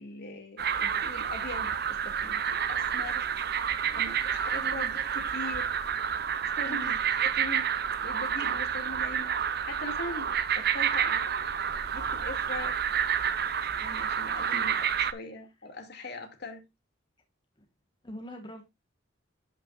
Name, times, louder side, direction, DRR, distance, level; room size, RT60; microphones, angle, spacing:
voice 1, 0.0-3.2 3.9-5.7 6.5-6.9 7.2-7.7 8.0-11.2 11.9-12.8 13.8-14.9 15.1-16.6, left 2 dB, 60° left, 2.4 m, -41 dB
sound 1, 0.6-15.1, right 8 dB, 55° right, 0.7 m, -29 dB
voice 2, 4.4-4.9 6.7-7.0 14.5-14.7 17.6-17.7 18.0-18.6, equal, 25° left, 1.4 m, -44 dB
12.0 x 5.9 x 2.5 m
head